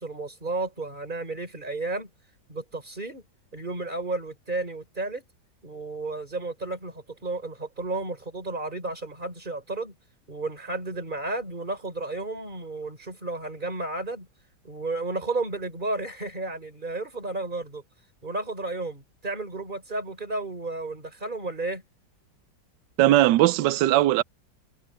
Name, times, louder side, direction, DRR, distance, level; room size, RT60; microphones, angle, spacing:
voice 1, 0.0-2.1 2.5-3.2 3.5-5.2 5.6-10.0 10.3-14.3 14.6-17.8 18.2-21.8, right 2 dB, 25° right, 4.3 m, -32 dB
voice 2, 23.0-24.2, right 15 dB, 75° right, 1.2 m, -19 dB
omnidirectional pair, 2.0 m